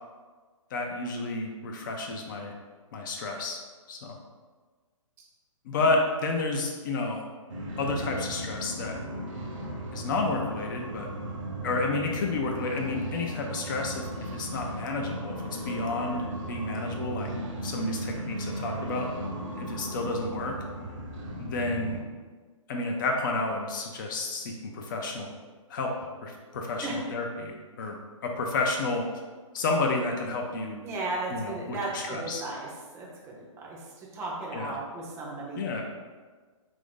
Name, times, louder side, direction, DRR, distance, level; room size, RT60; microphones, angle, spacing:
voice 1, 0.7-2.5 2.9-3.6 3.9-4.2 5.7-7.2 7.8-9.0 9.9-11.1 11.6-14.0 14.3-17.3 17.6-19.1 19.5-20.5 21.4-22.0 22.7-25.3 25.7-25.9 26.2-28.0 28.2-29.0 29.5-30.8 31.3-32.4 34.5-34.8 35.5-35.8, left 3 dB, 40° left, 1 dB, 0.4 m, -30 dB
sound 1, 7.5-22.0, right 1 dB, 60° right, 0.8 m, -36 dB
voice 2, 30.8-35.8, right 2 dB, 15° right, -3 dB, 0.5 m, -36 dB
2.5 x 2.5 x 3.6 m, 1.4 s
hypercardioid pair, 135°, 17 cm